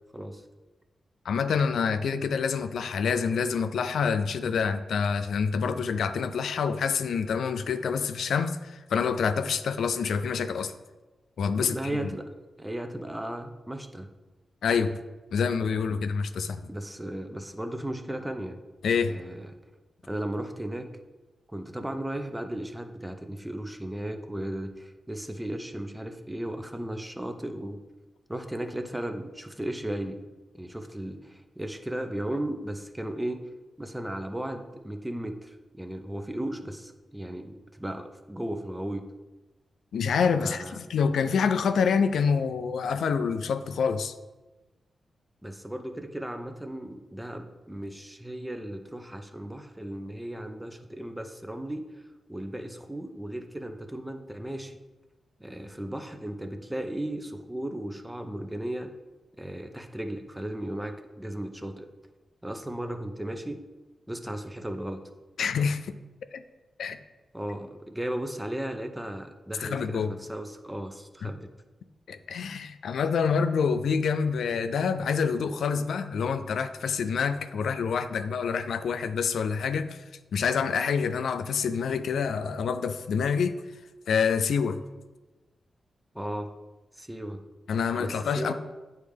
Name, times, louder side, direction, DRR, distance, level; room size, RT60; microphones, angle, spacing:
voice 1, 0.1-0.4 11.5-12.3 12.6-14.1 15.9-16.0 16.7-18.6 19.0-19.5 20.0-20.9 21.5-27.8 28.3-30.2 30.5-33.4 33.8-39.0 40.4-40.8 45.4-51.8 52.3-54.8 55.4-58.9 59.4-61.9 62.4-63.6 64.1-65.0 67.3-71.5 86.1-86.5 87.0-87.4 88.0-88.5, right 1 dB, 5° right, 0.5 m, -35 dB
voice 2, 1.3-10.7 11.4-11.8 14.6-15.0 15.3-16.7 18.8-19.2 39.9-44.1 65.4-65.9 66.3-66.4 66.8-67.0 69.6-70.1 72.1-80.0 80.3-83.5 84.1-84.8 87.7-88.5, left 6 dB, 90° left, 0.3 m, -27 dB
9.4 x 3.2 x 3.3 m
wide cardioid pair, 120°, 0 cm